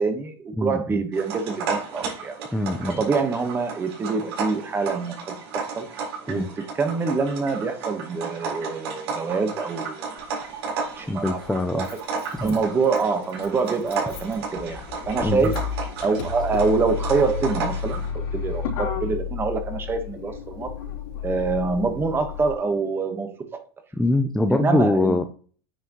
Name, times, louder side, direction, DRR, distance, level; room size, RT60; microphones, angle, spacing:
voice 1, 0.0-2.3 3.0-5.9 6.2-10.1 10.8-11.4 11.7-11.8 12.4-15.5 16.0-20.7 21.2-23.3 24.5-25.2, right 4 dB, 15° right, 7 dB, 1.2 m, -25 dB
voice 2, 0.6-1.0 2.5-3.0 6.3-6.5 11.1-11.9 12.3-12.6 15.2-15.5 23.9-25.2, left 2 dB, 5° left, 6 dB, 0.5 m, -23 dB
sound 1, 1.1-18.1, right 5 dB, 80° right, 4.1 m, -33 dB
Motor vehicle (road), 10.2-10.3 11.4-22.6, left 6 dB, 80° left, 3.4 m, -32 dB
9.4 x 5.8 x 3.0 m, 0.41 s
supercardioid pair, 155°, 13 cm